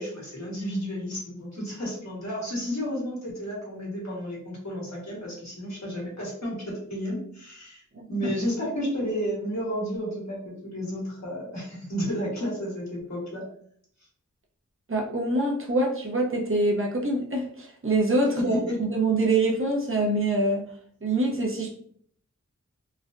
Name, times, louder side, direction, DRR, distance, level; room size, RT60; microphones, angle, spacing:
voice 1, 0.0-7.8 8.1-13.4 18.4-18.8, equal, 60° left, -5 dB, 1.5 m, -32 dB
voice 2, 14.9-20.6 21.0-21.7, right 2 dB, 45° right, -2 dB, 0.8 m, -25 dB
3.2 x 2.3 x 2.5 m, 0.62 s
wide cardioid pair, 50°, 30 cm